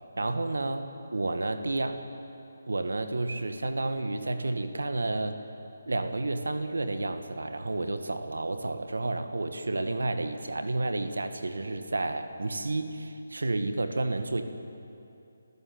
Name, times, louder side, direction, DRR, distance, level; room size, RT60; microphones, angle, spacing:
voice 1, 0.2-0.8 1.1-2.0 2.7-5.4 5.9-14.4, right 2 dB, 80° right, 8 dB, 1.6 m, -31 dB
26.0 x 14.5 x 7.8 m, 2.7 s
figure-of-eight pair, 155°, 0 cm